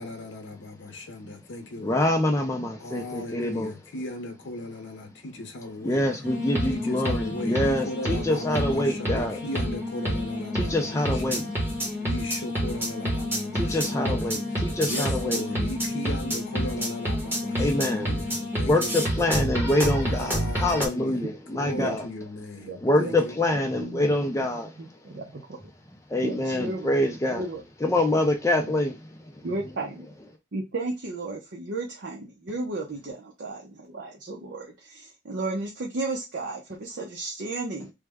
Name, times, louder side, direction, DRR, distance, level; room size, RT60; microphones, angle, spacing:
voice 1, 0.0-2.1 2.8-6.1 6.6-11.5 12.0-19.2 20.0-21.2 21.5-23.3, left 1 dB, 85° left, 0.7 m, -37 dB
voice 2, 1.8-3.7 5.8-9.4 10.5-11.4 13.5-15.4 17.6-18.2 18.6-22.0 22.8-24.7 26.1-27.4 27.8-28.9, left 1 dB, 15° left, 0.4 m, -25 dB
sound 1, 6.2-20.9, equal, 10° right, 0.9 m, -29 dB
voice 3, 21.2-22.0 22.6-25.6 26.2-26.9 27.2-27.9 28.6-28.7 29.4-30.1 30.5-37.9, right 2 dB, 70° right, 0.7 m, -34 dB
3.3 x 2.1 x 3.4 m
head